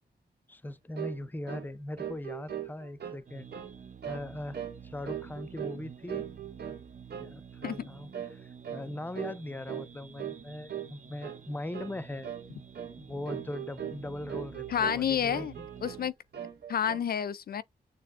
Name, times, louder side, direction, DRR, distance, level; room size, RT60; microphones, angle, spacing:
voice 1, 0.5-3.5 4.1-6.3 7.2-12.3 13.0-15.7, left 1 dB, 10° left, 0.5 m, -40 dB
sound 1, 1.0-1.2 1.5-1.7 2.0-3.2 3.5-3.8 4.0-4.3 4.5-4.8 5.1-5.8 6.1-6.8 7.1-7.3 7.6-7.8 8.1-8.4 8.6-8.9 9.2-9.4 9.7-9.9 10.2-10.4 10.7-10.9 11.2-11.4 11.7-12.0 12.2-12.5 12.7-12.9 13.3-14.0 14.3-15.0 15.3-16.0 16.3-17.1, right 9 dB, 75° right, 1.2 m, -39 dB
sound 2, 3.3-16.1, right 7 dB, 45° right, 0.6 m, -50 dB
voice 2, 14.7-15.5 15.8-16.1 16.7-17.6, left 8 dB, 65° left, 0.4 m, -29 dB
6.8 x 2.9 x 2.5 m
cardioid pair, 70°, 17 cm